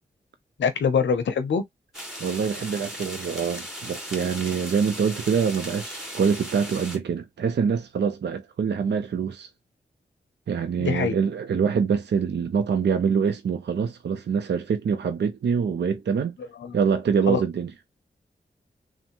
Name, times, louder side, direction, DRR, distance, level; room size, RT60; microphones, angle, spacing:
voice 1, 0.6-1.6 10.8-11.1 16.6-16.7 17.3-17.4, left 6 dB, 80° left, 0.6 m, -23 dB
sound 1, 1.9-7.0, equal, ahead, 2.1 m, -37 dB
voice 2, 2.2-9.5 10.5-16.4 16.7-17.7, right 6 dB, 65° right, 0.5 m, -25 dB
3.2 x 2.1 x 2.9 m
cardioid pair, 40°, 19 cm